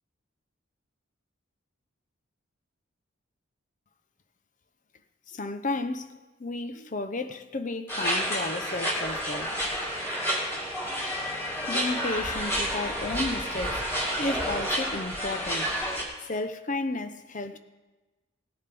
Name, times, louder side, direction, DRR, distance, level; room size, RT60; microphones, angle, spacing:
voice 1, 5.3-6.1 6.4-9.5 11.7-15.7 16.3-17.6, left 2 dB, 35° left, 0.6 m, -33 dB
sound 1, 7.9-16.0, equal, 10° left, 2.4 m, -30 dB
18.5 x 10.0 x 3.4 m
head